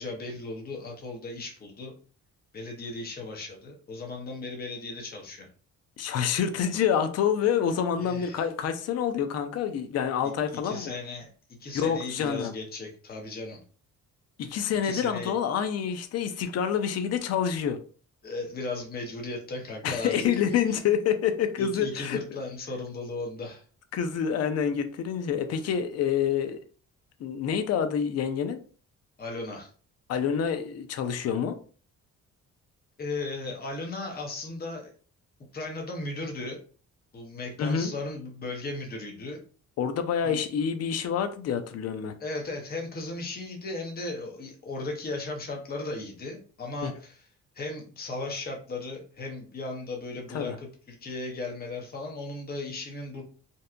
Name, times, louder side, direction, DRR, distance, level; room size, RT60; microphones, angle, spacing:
voice 1, 0.0-1.9 2.5-5.5 8.0-8.4 10.2-10.3 10.6-13.6 14.8-15.3 18.2-20.8 21.6-23.6 29.2-29.7 33.0-34.9 35.5-36.6 37.1-39.4 40.2-40.4 42.2-47.2 47.5-53.2, left 2 dB, 30° left, 0.8 m, -36 dB
voice 2, 6.0-10.9 11.7-12.5 14.4-17.8 19.8-22.2 23.9-26.6 27.2-28.6 30.1-31.6 37.6-37.9 39.8-42.2 46.8-46.9 50.3-50.6, left 8 dB, 55° left, 0.5 m, -27 dB
2.6 x 2.2 x 2.4 m
cardioid pair, 90°, 30 cm